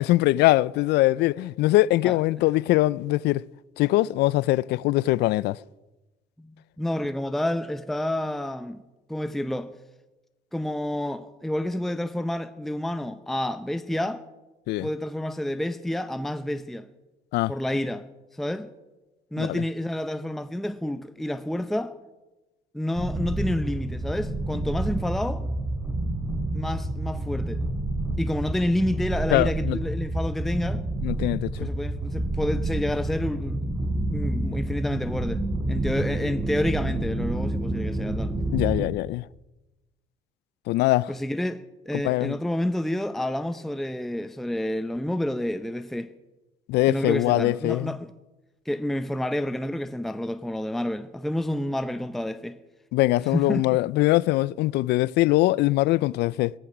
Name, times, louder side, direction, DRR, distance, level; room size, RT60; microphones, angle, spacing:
voice 1, 0.0-3.4 3.8-5.6 14.7-14.9 17.3-17.5 19.4-19.6 29.3-29.8 31.0-31.7 38.5-39.2 40.7-41.1 42.0-42.4 46.7-48.0 52.9-56.5, left 18 dB, 80° left, 0.4 m, -22 dB
voice 2, 6.8-8.8 9.1-9.7 10.5-14.2 14.8-16.9 17.5-18.0 18.4-18.7 19.3-21.9 22.7-25.4 26.5-27.6 28.2-30.8 31.6-38.3 41.1-46.1 46.9-48.1 48.7-52.6 53.2-53.7, left 1 dB, ahead, 0.6 m, -29 dB
sound 1, 23.0-38.9, right 1 dB, 15° right, 3.5 m, -29 dB
17.0 x 14.0 x 6.0 m
cardioid pair, 110°, 17 cm